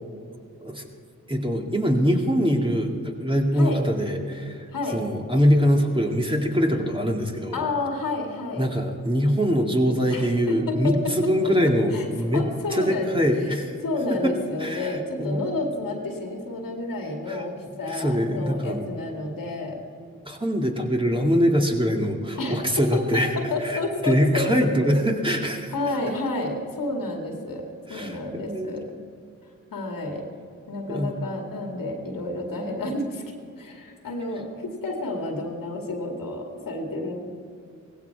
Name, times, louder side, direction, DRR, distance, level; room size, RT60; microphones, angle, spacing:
voice 1, 1.3-4.7 4.9-7.6 8.5-12.4 12.7-13.8 14.1-14.3 14.6-15.4 17.3-17.4 17.9-18.8 20.2-23.3 23.6-23.8 24.0-25.7 27.9-28.8 30.9-31.2, equal, 15° right, 1 dB, 2.2 m, -23 dB
voice 2, 7.5-8.6 10.1-11.3 11.6-13.5 13.8-19.8 22.4-24.4 24.8-24.9 25.7-28.9 29.7-30.2 30.7-33.2 33.6-37.2, left 2 dB, 85° left, 2 dB, 2.2 m, -30 dB
17.0 x 15.5 x 4.7 m, 2.4 s
cardioid pair, 40°, 33 cm